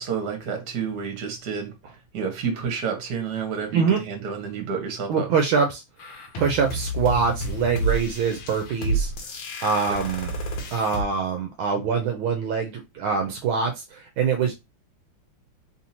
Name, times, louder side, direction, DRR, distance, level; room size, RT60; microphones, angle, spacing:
voice 1, 0.0-1.7 2.1-5.3 9.9-10.0, right 6 dB, 55° right, 3 dB, 1.5 m, -29 dB
voice 2, 5.1-5.8 6.4-9.1 9.6-10.4 10.7-14.5, right 5 dB, 80° right, 3 dB, 1.4 m, -24 dB
sound 1, 6.0-11.0, right 2 dB, 70° left, 1.5 m, -30 dB
3.7 x 2.7 x 2.8 m, 0.23 s
omnidirectional pair, 2.3 m